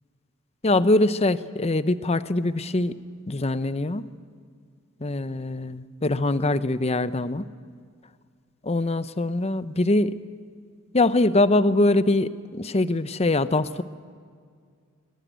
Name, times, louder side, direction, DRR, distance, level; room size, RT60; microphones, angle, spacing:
voice 1, 0.6-3.0 3.3-4.0 5.0-7.4 8.6-10.1 10.9-13.8, left 2 dB, 30° left, 14 dB, 0.7 m, -23 dB
22.5 x 20.5 x 9.2 m, 2.1 s
head